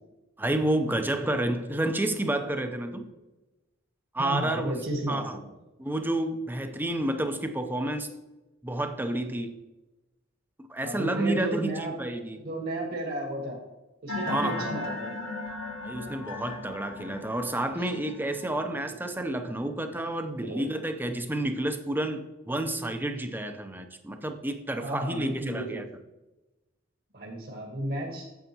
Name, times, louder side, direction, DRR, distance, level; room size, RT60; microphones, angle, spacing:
voice 1, 0.4-3.0 4.1-4.7 5.1-5.4 5.8-8.1 8.6-9.5 10.6-12.4 14.3-14.7 15.8-25.8, right 1 dB, 10° right, 7 dB, 0.7 m, -30 dB
voice 2, 4.2-5.5 10.8-11.9 12.4-13.6 14.0-15.1 20.4-20.6 24.8-25.8 27.1-28.2, right 1 dB, 50° right, -2 dB, 1.6 m, -33 dB
sound 1, 14.1-19.7, left 2 dB, 70° left, 1.5 m, -37 dB
9.0 x 7.5 x 3.0 m, 1.0 s
head